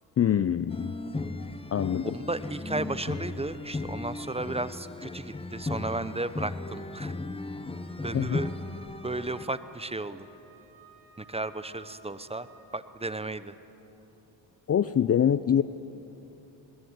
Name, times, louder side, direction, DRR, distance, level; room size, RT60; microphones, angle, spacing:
voice 1, 0.2-0.9 1.7-2.1 8.1-8.4 14.7-15.6, left 9 dB, 30° left, 14 dB, 0.5 m, -24 dB
sound 1, 0.7-9.5, left 2 dB, 10° left, 1.0 m, -36 dB
voice 2, 2.0-7.2 8.0-8.5 9.0-10.3 11.2-12.5 12.7-13.6, right 2 dB, 10° right, 14 dB, 0.8 m, -34 dB
Wind instrument woodwind instrument, 7.7-12.8, right 5 dB, 75° right, 5.5 m, -55 dB
21.0 x 20.5 x 8.1 m, 2.9 s
supercardioid pair, 75°, 48 cm